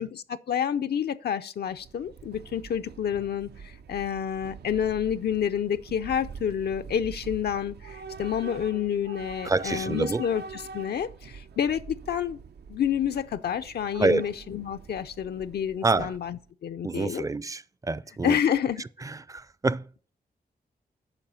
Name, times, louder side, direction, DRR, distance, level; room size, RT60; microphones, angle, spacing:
voice 1, 0.0-12.4 12.7-17.3 18.2-18.8, left 8 dB, 75° left, 0.5 m, -29 dB
Train / Subway metro underground, 1.7-16.5, right 5 dB, 80° right, 0.5 m, -45 dB
voice 2, 9.5-10.2 14.0-14.2 15.8-16.1 16.8-18.4 19.0-19.8, right 3 dB, 20° right, 0.4 m, -27 dB
9.0 x 5.5 x 6.9 m
wide cardioid pair, 95°, 17 cm